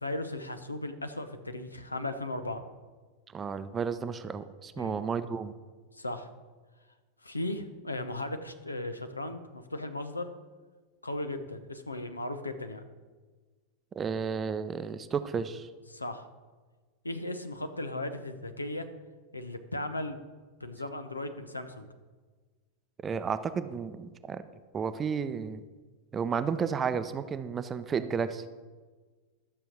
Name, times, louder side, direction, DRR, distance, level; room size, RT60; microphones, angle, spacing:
voice 1, 0.0-2.6 4.8-5.0 5.9-6.3 7.2-10.3 11.0-12.8 15.9-16.3 17.0-18.9 19.3-20.2 20.6-21.9, left 1 dB, 80° left, 9 dB, 0.9 m, -36 dB
voice 2, 3.3-5.5 13.9-15.7 23.0-24.4 24.7-25.6 26.1-28.4, right 6 dB, 20° right, 12 dB, 0.6 m, -32 dB
12.0 x 6.8 x 6.1 m, 1.4 s
figure-of-eight pair, 90°, 0 cm